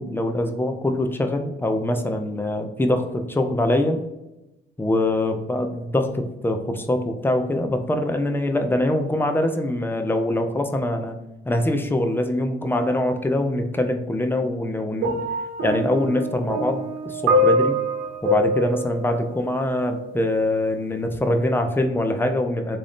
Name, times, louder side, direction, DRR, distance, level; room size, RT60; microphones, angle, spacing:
voice 1, 0.0-4.0 4.8-11.2 11.5-15.2 15.6-17.8 18.2-22.8, left 1 dB, 10° left, 5 dB, 0.6 m, -23 dB
sound 1, 15.0-20.1 21.0-21.2, equal, 90° right, 0.8 m, -24 dB
3.5 x 2.6 x 3.5 m, 0.95 s
cardioid pair, 90°, 20 cm